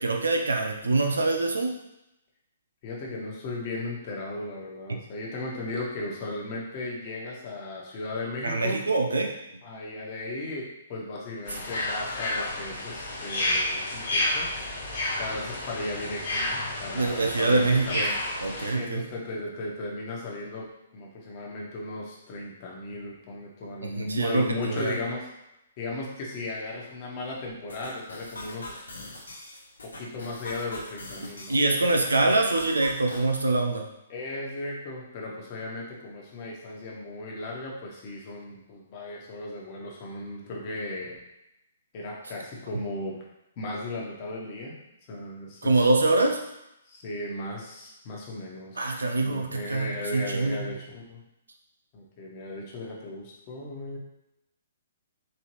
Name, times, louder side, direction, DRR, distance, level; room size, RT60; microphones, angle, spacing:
voice 1, 0.0-1.7 8.4-9.3 16.9-18.1 18.4-19.0 23.8-24.9 31.5-33.9 45.6-46.4 48.8-50.7, right 2 dB, 75° right, 3 dB, 0.7 m, -24 dB
voice 2, 2.8-8.8 9.6-14.5 15.2-18.2 18.7-20.7 20.9-25.2 25.8-29.0 29.8-31.8 34.1-41.2 41.9-43.2 43.6-44.8 45.1-45.9 46.8-48.9 49.1-51.2 51.9-54.0, left 2 dB, 35° left, -3 dB, 1.3 m, -36 dB
sound 1, 11.5-18.7, left 1 dB, 50° left, 1.6 m, -30 dB
sound 2, 27.7-33.4, left 2 dB, 75° left, 1.0 m, -43 dB
4.5 x 3.4 x 3.2 m, 0.87 s
figure-of-eight pair, 125°, 0 cm